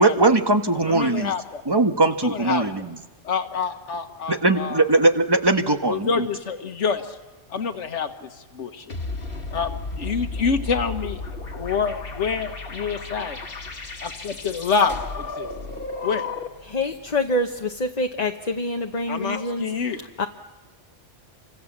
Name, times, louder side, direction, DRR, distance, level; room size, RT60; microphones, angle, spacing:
voice 1, 0.0-1.3 1.6-2.9 4.3-6.3, right 2 dB, 20° right, 6 dB, 1.3 m, -20 dB
voice 2, 0.9-1.6 2.2-2.6 3.2-4.8 5.8-7.1 7.5-8.3 8.5-8.8 9.5-9.7 10.0-11.2 11.6-13.4 14.0-15.5 16.0-16.3 19.1-20.0, left 5 dB, 85° left, 6 dB, 1.6 m, -26 dB
sound 1, 8.9-16.7, left 3 dB, 55° left, 1.8 m, -33 dB
voice 3, 16.6-19.7 20.0-20.3, left 2 dB, 40° left, 4 dB, 1.0 m, -26 dB
28.5 x 25.5 x 7.3 m, 1.2 s
omnidirectional pair, 1.2 m